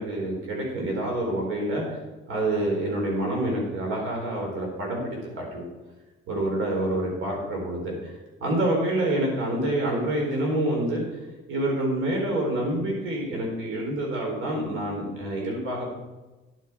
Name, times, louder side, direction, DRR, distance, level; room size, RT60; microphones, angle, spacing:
voice 1, 0.0-1.8 2.3-5.6 6.3-8.1 8.4-11.0 11.5-15.9, right 1 dB, 80° right, 0 dB, 4.1 m, -27 dB
10.5 x 9.7 x 4.6 m, 1.2 s
cardioid pair, 135°, 21 cm